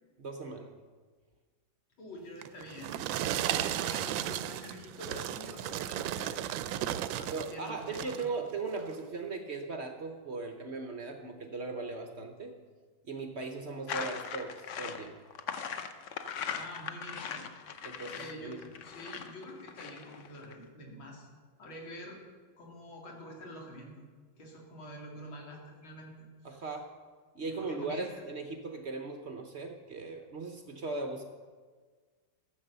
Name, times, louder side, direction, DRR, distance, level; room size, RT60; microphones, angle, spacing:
voice 1, 0.2-0.7 7.2-12.5 13.0-15.2 17.8-18.6 26.4-26.9 27.3-31.2, right 3 dB, 60° right, 5 dB, 0.7 m, -38 dB
voice 2, 2.0-3.1 3.5-6.5 7.1-8.4 16.5-17.5 18.1-21.3 21.6-22.2 22.6-23.9 24.4-26.1 26.4-26.7 27.4-28.2, equal, 80° left, -1 dB, 3.1 m, -47 dB
sound 1, 2.4-7.5 7.9-8.3 8.9-9.0, right 11 dB, 75° right, 1.2 m, -34 dB
sound 2, 13.9-20.5, left 7 dB, 65° left, 0.7 m, -39 dB
13.0 x 7.4 x 6.7 m, 1.5 s
omnidirectional pair, 2.2 m